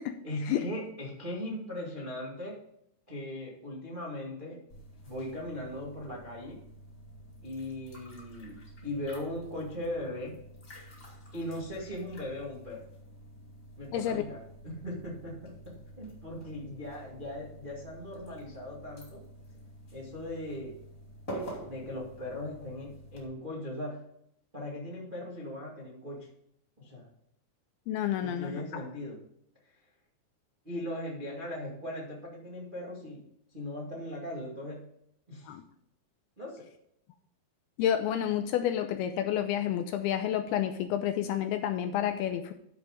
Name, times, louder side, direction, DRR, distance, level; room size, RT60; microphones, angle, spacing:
voice 1, 0.2-2.6 3.1-4.6 5.0-6.6 7.4-10.4 11.3-12.9 13.8-19.2 19.9-20.8 21.3-24.0 24.5-26.3 26.8-27.1 28.2-29.2 30.6-33.2 33.5-34.8 35.3-35.5 36.4-36.7, left 1 dB, 35° right, -4 dB, 0.8 m, -39 dB
sound 1, 4.7-23.3, right 1 dB, 25° left, 1.9 m, -48 dB
voice 2, 13.9-14.2 27.9-28.8 35.5-35.6 37.8-42.5, left 10 dB, 80° left, 8 dB, 2.3 m, -30 dB
12.0 x 5.1 x 4.9 m, 0.74 s
omnidirectional pair, 4.8 m